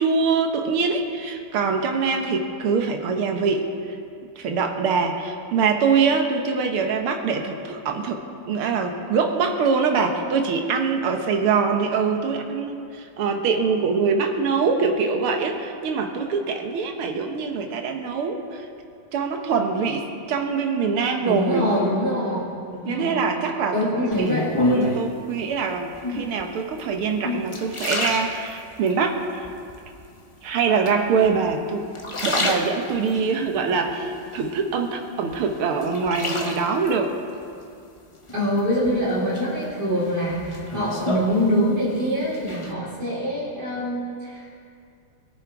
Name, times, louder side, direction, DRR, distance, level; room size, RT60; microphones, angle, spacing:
voice 1, 0.0-4.0 4.4-8.2 8.5-18.7 19.1-21.6 22.1-22.5 22.9-24.5 24.7-29.5 30.4-31.8 32.2-37.1, right 5 dB, 90° right, 4 dB, 2.0 m, -24 dB
voice 2, 21.2-22.4 22.7-23.2 23.7-24.5 38.3-44.6, equal, 50° right, -10 dB, 4.5 m, -24 dB
sound 1, 24.1-25.2 25.9-26.4 27.0-28.9 29.4-30.0 30.9-31.5 31.9-33.2 33.7-34.9 35.3-36.9 38.3-38.9 39.3-42.0 42.2-42.7, left 2 dB, 25° left, 0.6 m, -28 dB
21.5 x 10.5 x 4.7 m, 2.4 s
omnidirectional pair, 2.3 m